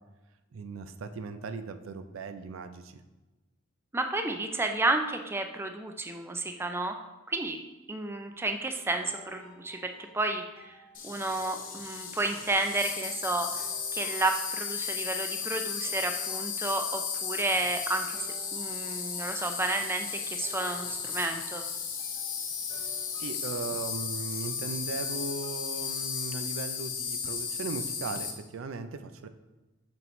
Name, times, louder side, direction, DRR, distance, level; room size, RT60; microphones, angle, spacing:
voice 1, 0.5-3.0 23.2-29.3, right 4 dB, 90° right, 10 dB, 0.4 m, -38 dB
voice 2, 3.9-7.0 7.3-7.6 7.9-10.8 11.0-13.6 13.9-18.3 18.5-21.6, right 2 dB, 10° right, 5 dB, 0.4 m, -31 dB
sound 1, 9.0-14.8 15.4-17.1 18.1-25.5, equal, 10° left, 1.5 m, -54 dB
Insect, 10.9-28.3, left 6 dB, 45° left, 0.8 m, -35 dB
5.7 x 5.3 x 3.1 m, 1.1 s
head